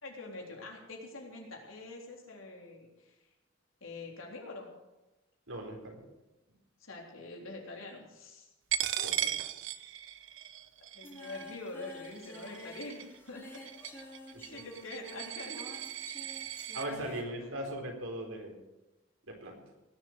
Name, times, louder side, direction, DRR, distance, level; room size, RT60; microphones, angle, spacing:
voice 1, 0.0-3.2 3.8-4.7 6.8-8.5 9.0-9.3 10.9-13.6 14.5-15.7 16.9-17.2, left 2 dB, 80° left, 0 dB, 3.6 m, -45 dB
voice 2, 5.5-6.0 9.0-9.2 16.7-18.5 19.3-19.6, right 1 dB, 85° right, 1 dB, 4.1 m, -39 dB
Coin (dropping), 8.7-16.9, right 11 dB, 70° right, 0.8 m, -38 dB
Singing, 11.0-17.2, left 1 dB, 10° left, 3.6 m, -50 dB
19.0 x 7.6 x 7.9 m, 1.0 s
head